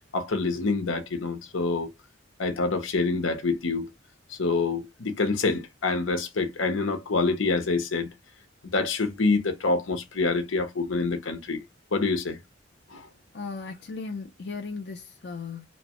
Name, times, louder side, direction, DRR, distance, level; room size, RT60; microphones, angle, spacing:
voice 1, 0.0-1.9 2.4-3.9 4.3-8.1 8.6-11.6 11.9-12.4 12.9-13.1, left 3 dB, 85° left, 0.8 m, -26 dB
voice 2, 13.3-15.7, left 4 dB, 60° left, 0.4 m, -36 dB
2.9 x 2.1 x 2.9 m
head